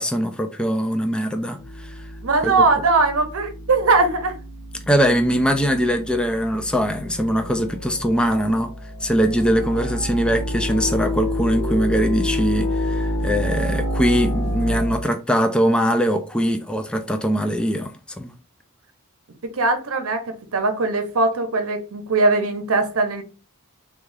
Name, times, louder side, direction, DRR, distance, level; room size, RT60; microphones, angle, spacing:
voice 1, 0.0-2.0 2.4-2.5 4.9-8.7 9.0-18.3, equal, 5° left, 0.3 m, -22 dB
sound 1, 1.6-15.0, left 1 dB, 80° left, 0.9 m, -28 dB
voice 2, 2.2-4.3 14.7-14.8 19.5-20.2 20.5-23.2, right 3 dB, 70° right, 0.7 m, -20 dB
3.6 x 2.3 x 3.2 m
head